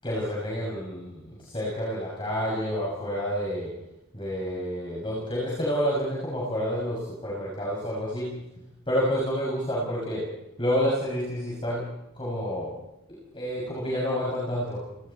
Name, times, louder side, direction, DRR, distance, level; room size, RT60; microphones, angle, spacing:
voice 1, 0.0-3.7 4.1-8.3 8.9-10.2 10.6-11.8 12.1-12.7 13.1-14.8, equal, 25° left, -5 dB, 6.6 m, -29 dB
29.5 x 20.5 x 4.3 m, 0.88 s
head